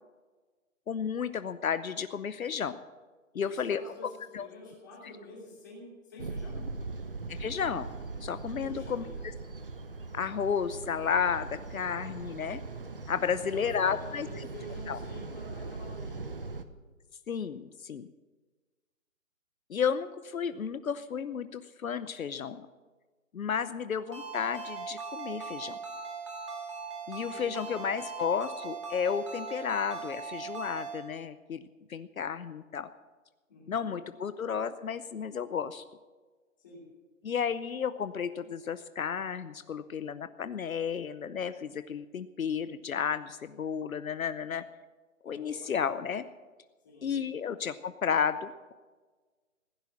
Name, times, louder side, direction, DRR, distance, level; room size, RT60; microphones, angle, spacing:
voice 1, 0.9-2.8 3.3-3.8 4.3-4.5 7.4-7.9 8.2-9.0 10.1-12.6 13.1-14.3 14.9-15.0 17.3-18.1 19.7-22.7 23.3-25.8 27.1-32.9 33.7-35.8 37.2-44.6 45.2-46.2 47.0-48.7, left 7 dB, 75° left, 13 dB, 0.8 m, -32 dB
voice 2, 3.3-6.6 8.6-9.2 13.3-16.3 27.1-27.7 33.5-34.0 36.6-36.8 45.2-45.7 46.8-47.2, left 2 dB, 15° left, -4 dB, 2.9 m, -48 dB
sound 1, 6.2-16.6, right 3 dB, 40° right, 0.9 m, -40 dB
Ringtone, 24.1-31.0, right 4 dB, 20° right, 1.8 m, -40 dB
16.0 x 9.7 x 7.3 m, 1.3 s
hypercardioid pair, 180°, 41 cm